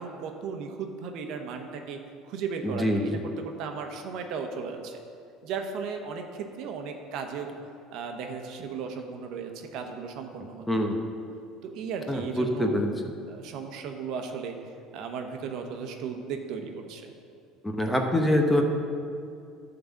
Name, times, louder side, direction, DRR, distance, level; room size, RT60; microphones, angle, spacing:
voice 1, 0.0-3.1 3.4-5.0 5.4-7.5 7.9-10.6 11.6-12.8 13.3-14.6 14.9-17.1, right 5 dB, 65° right, 4 dB, 1.0 m, -36 dB
voice 2, 2.6-3.2 10.7-11.0 12.1-13.1 17.6-18.6, left 1 dB, 5° left, 3 dB, 0.9 m, -25 dB
11.0 x 3.9 x 7.2 m, 2.5 s
cardioid pair, 120°, 0 cm